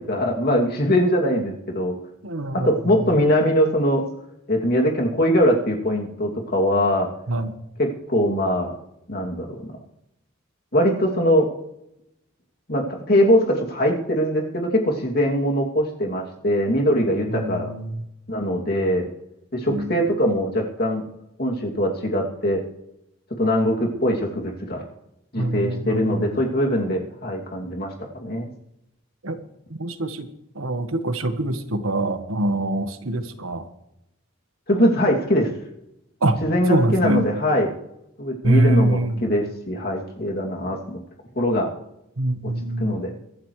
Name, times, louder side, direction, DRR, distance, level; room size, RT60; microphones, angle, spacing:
voice 1, 0.0-1.9 2.6-4.0 4.5-7.1 7.8-8.7 9.1-9.7 10.7-11.5 12.7-17.7 18.3-19.1 19.5-21.0 21.4-22.6 23.4-24.9 25.3-28.5 34.7-35.5 36.4-37.7 38.2-41.0 41.4-41.7 42.8-43.1, equal, 50° left, 0 dB, 2.7 m, -22 dB
voice 2, 2.2-2.7 3.0-3.1 7.3-7.6 17.3-18.0 19.7-20.0 25.4-26.3 29.2-29.4 29.7-30.3 30.5-33.7 36.2-36.4 36.7-37.3 38.4-39.2 42.2-43.0, right 1 dB, 90° right, 9 dB, 1.4 m, -24 dB
23.5 x 12.0 x 3.3 m, 0.83 s
head